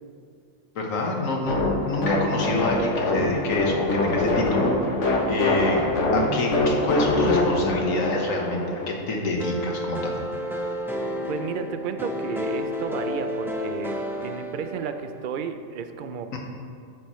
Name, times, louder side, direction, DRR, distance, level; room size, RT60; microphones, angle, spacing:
voice 1, 0.7-4.7 5.0-10.2 16.3-16.4, left 2 dB, 85° left, 1 dB, 1.7 m, -27 dB
sound 1, 1.5-8.9, left 2 dB, 65° left, 1.4 m, -24 dB
sound 2, 9.4-15.3, left 1 dB, 5° right, 0.5 m, -31 dB
voice 2, 11.3-16.4, right 6 dB, 55° right, 8 dB, 0.5 m, -33 dB
12.5 x 8.2 x 3.1 m, 2.3 s
omnidirectional pair, 1.4 m